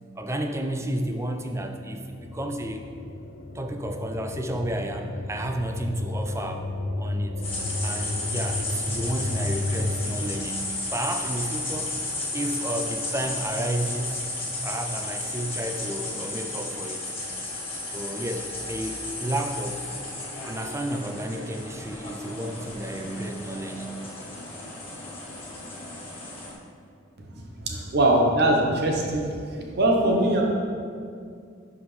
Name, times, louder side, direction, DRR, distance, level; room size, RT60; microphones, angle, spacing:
voice 1, 0.2-2.8 3.5-6.7 7.0-7.4 7.8-10.6 10.9-11.9 12.3-14.2 14.6-17.0 17.9-19.9 20.4-23.9, right 1 dB, 15° right, 4 dB, 0.4 m, -31 dB
sound 1, 1.4-10.4, left 2 dB, 80° left, 0.6 m, -33 dB
sound 2, 7.4-26.5, left 2 dB, 30° left, 1.5 m, -33 dB
voice 2, 27.7-30.4, right 1 dB, 55° right, 0 dB, 0.9 m, -22 dB
11.5 x 4.9 x 3.3 m, 2.3 s
head